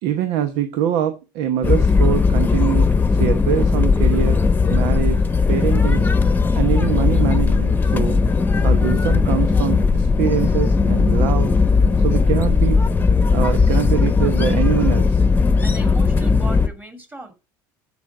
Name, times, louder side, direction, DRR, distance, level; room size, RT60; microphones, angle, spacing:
voice 1, 0.0-4.4 4.7-5.2 5.5-6.1 6.5-8.2 8.6-11.5 12.0-12.8 13.3-15.2, right 10 dB, 75° right, 1.0 m, -24 dB
sound 1, 1.6-16.7, left 4 dB, 20° left, 1.0 m, -17 dB
voice 2, 15.6-17.3, right 1 dB, 15° right, 2.8 m, -37 dB
13.0 x 5.2 x 4.8 m
supercardioid pair, 95°, 10 cm